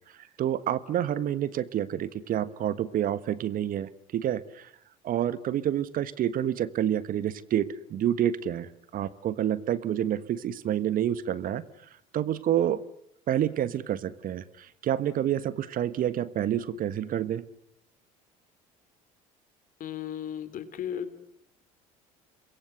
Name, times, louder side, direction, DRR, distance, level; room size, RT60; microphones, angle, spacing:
voice 1, 0.4-4.7 5.0-11.6 12.1-12.8 13.3-17.4, right 10 dB, 50° right, 16 dB, 1.4 m, -28 dB
voice 2, 19.8-21.1, left 9 dB, 50° left, 12 dB, 3.6 m, -35 dB
28.0 x 22.0 x 8.1 m, 0.72 s
hypercardioid pair, 65°, 18 cm